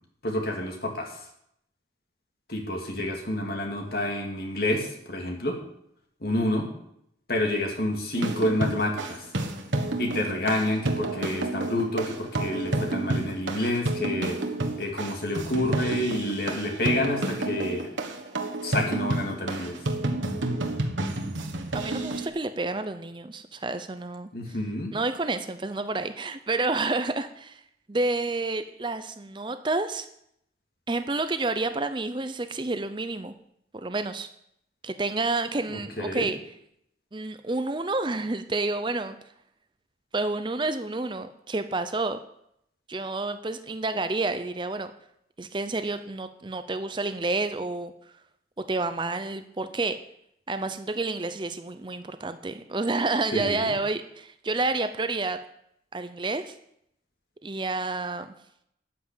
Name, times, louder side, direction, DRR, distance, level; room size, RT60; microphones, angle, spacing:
voice 1, 0.2-1.2 2.5-5.6 6.2-6.7 7.3-9.2 10.0-14.4 14.8-17.9 18.6-19.8 24.3-25.0 35.7-36.3 53.3-53.7, left 1 dB, 55° left, 2 dB, 2.3 m, -28 dB
sound 1, 8.1-22.3, right 2 dB, 85° right, 1.5 m, -30 dB
voice 2, 21.7-24.6 24.9-27.6 27.9-30.1 30.9-33.3 33.7-34.3 34.8-36.4 37.1-39.2 40.1-42.2 42.9-44.9 45.4-47.9 48.7-50.0 50.5-55.4 55.9-56.5 57.4-58.3, right 3 dB, 25° right, 10 dB, 0.6 m, -29 dB
12.5 x 5.8 x 8.9 m, 0.75 s
head